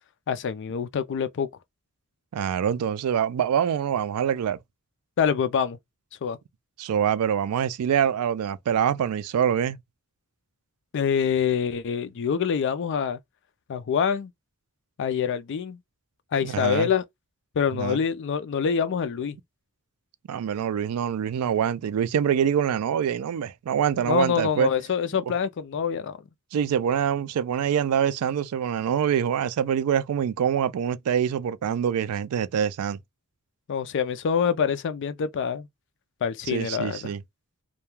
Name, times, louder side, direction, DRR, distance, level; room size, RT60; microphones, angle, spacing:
voice 1, 0.3-1.5 5.2-5.8 6.2-6.4 10.9-13.2 13.7-14.3 15.0-15.8 16.3-17.0 17.6-19.4 24.0-26.2 33.7-35.7 36.2-37.1, left 7 dB, 55° left, 0.4 m, -25 dB
voice 2, 2.3-4.6 6.8-9.8 16.4-16.9 17.7-18.0 20.3-24.7 26.5-33.0 36.5-37.2, right 8 dB, 75° right, 0.3 m, -25 dB
2.2 x 2.1 x 3.0 m
head